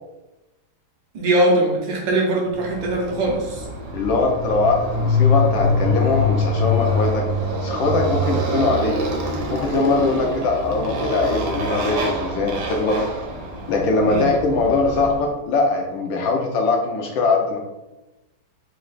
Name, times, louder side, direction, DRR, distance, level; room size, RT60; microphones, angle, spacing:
voice 1, 1.1-3.6 14.0-14.3, right 1 dB, 65° right, -1 dB, 1.3 m, -21 dB
Motorcycle, 2.6-15.3, left 2 dB, 85° right, 1.7 m, -24 dB
voice 2, 3.9-7.2 7.6-9.0 9.5-13.0 13.7-17.6, left 3 dB, 75° left, 1 dB, 1.2 m, -21 dB
4.3 x 2.4 x 3.8 m, 1.0 s
omnidirectional pair, 2.4 m